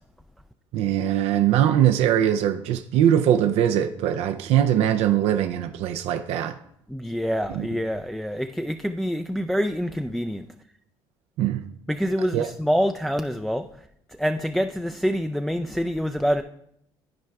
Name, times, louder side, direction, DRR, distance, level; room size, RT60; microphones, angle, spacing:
voice 1, 0.7-6.6 7.5-7.7 11.4-11.6 12.3-12.5, right 10 dB, 65° right, 0.4 m, -21 dB
voice 2, 6.9-10.5 11.9-13.7 14.2-16.4, equal, ahead, 0.3 m, -26 dB
13.0 x 4.6 x 2.3 m
supercardioid pair, 70°, 12 cm